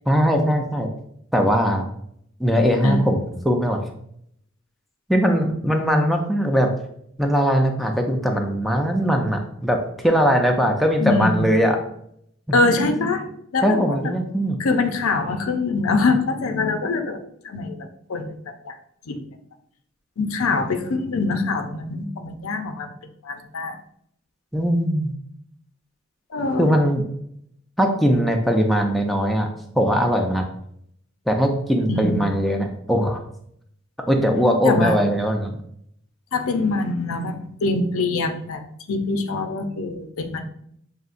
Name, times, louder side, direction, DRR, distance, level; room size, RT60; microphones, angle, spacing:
voice 1, 0.1-0.9 1.3-1.9 2.4-3.8 5.1-6.7 7.2-11.8 12.5-12.6 13.6-14.6 24.5-25.1 26.6-27.0 27.8-29.5 29.7-30.4 31.3-33.2 34.1-35.6, equal, ahead, 2 dB, 0.4 m, -20 dB
voice 2, 11.0-11.4 12.5-13.2 13.5-14.0 14.6-17.2 17.4-18.4 18.6-18.8 19.1-19.2 20.2-22.9 23.2-23.8 26.3-26.7 31.9-32.3 34.6-35.0 36.3-38.6 38.9-40.4, left 3 dB, 85° left, 7 dB, 0.5 m, -24 dB
6.4 x 2.7 x 2.5 m, 0.71 s
head